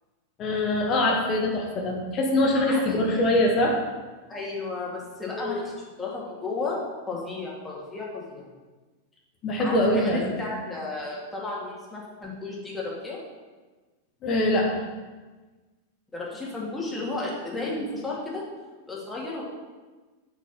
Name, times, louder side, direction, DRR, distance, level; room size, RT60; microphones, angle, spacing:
voice 1, 0.4-3.8 5.4-5.6 9.4-10.4 14.2-14.8 17.5-17.6, left 1 dB, 30° left, 0 dB, 1.7 m, -23 dB
voice 2, 2.5-3.3 4.3-8.5 9.6-13.2 16.1-18.4 18.9-19.4, left 3 dB, 10° left, -5 dB, 2.7 m, -33 dB
7.8 x 5.2 x 7.0 m, 1.3 s
figure-of-eight pair, 90°, 0 cm